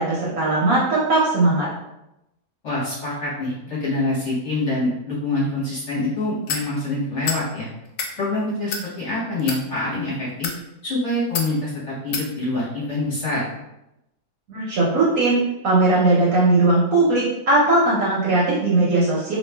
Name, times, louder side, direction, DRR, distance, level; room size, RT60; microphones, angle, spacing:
voice 1, 0.0-1.7 14.5-19.4, right 2 dB, 60° right, -6 dB, 1.0 m, -19 dB
voice 2, 2.6-7.7 8.2-10.5 10.8-13.4, left 2 dB, 45° left, -8 dB, 1.2 m, -25 dB
sound 1, 6.5-6.7 7.2-7.4 7.8-8.1 8.7-8.9 9.4-9.6 10.3-10.6 11.3-11.5 12.1-12.3, left 6 dB, 85° left, 1.3 m, -27 dB
3.0 x 2.4 x 3.3 m, 0.87 s
omnidirectional pair, 2.0 m